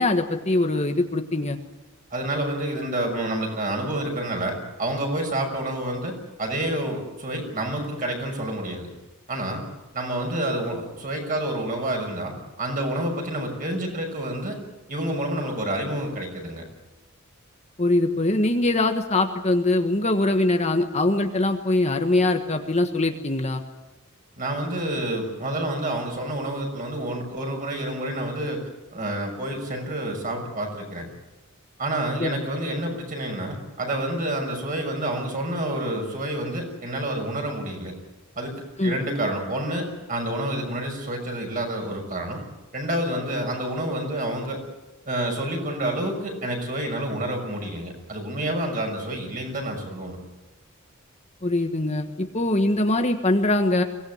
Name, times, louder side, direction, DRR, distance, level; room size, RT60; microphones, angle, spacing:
voice 1, 0.0-1.6 17.8-23.6 32.2-32.3 38.8-38.9 51.4-53.8, left 2 dB, 30° left, 5 dB, 1.5 m, -22 dB
voice 2, 2.1-8.9 9.3-9.6 9.9-14.6 14.9-16.6 24.4-28.6 28.9-31.1 31.8-37.9 38.4-42.4 42.7-44.6 45.1-50.2, right 1 dB, 40° right, 2 dB, 6.3 m, -28 dB
23.5 x 18.0 x 9.5 m, 1.1 s
head